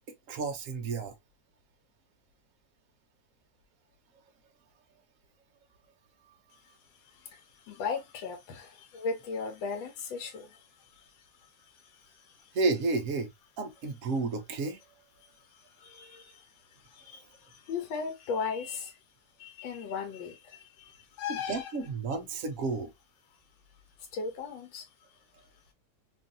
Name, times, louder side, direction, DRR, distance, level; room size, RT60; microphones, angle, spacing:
voice 1, 0.3-1.1 12.5-14.8 21.3-22.9, right 3 dB, 65° right, 0.8 m, -31 dB
voice 2, 7.0-11.3 11.6-12.6 15.5-19.0 19.4-21.7 24.1-24.9, left 5 dB, 85° left, 1.4 m, -38 dB
3.0 x 2.5 x 2.6 m
omnidirectional pair, 2.0 m